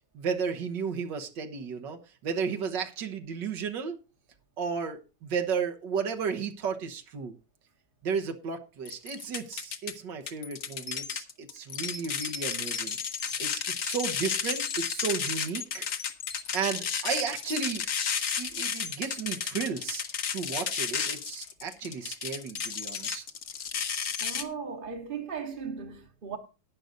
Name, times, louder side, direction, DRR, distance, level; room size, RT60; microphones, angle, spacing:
voice 1, 0.1-4.0 4.6-7.3 8.0-13.0 13.4-15.9 16.5-17.8 18.4-20.0 20.3-23.2, right 6 dB, 90° right, 1.9 m, -33 dB
sound 1, 8.9-9.9 10.3-24.4, left 7 dB, 60° left, 1.5 m, -32 dB
voice 2, 24.2-26.4, right 6 dB, 40° right, 1.0 m, -37 dB
12.0 x 9.5 x 3.9 m
omnidirectional pair, 1.8 m